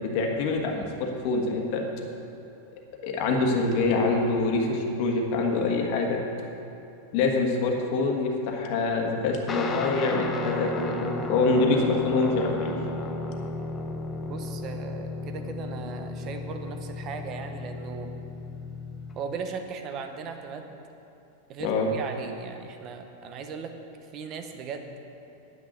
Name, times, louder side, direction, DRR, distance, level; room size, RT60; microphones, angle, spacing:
voice 1, 0.0-1.8 3.0-6.2 7.1-12.8 21.6-21.9, left 3 dB, 45° left, 1 dB, 1.4 m, -25 dB
Guitar, 9.5-19.2, left 2 dB, 15° left, 0.7 m, -34 dB
voice 2, 14.2-18.1 19.2-20.8 21.5-23.8 24.1-24.9, right 5 dB, 30° right, 6 dB, 0.8 m, -37 dB
9.8 x 6.4 x 7.9 m, 2.9 s
supercardioid pair, 160°, 0 cm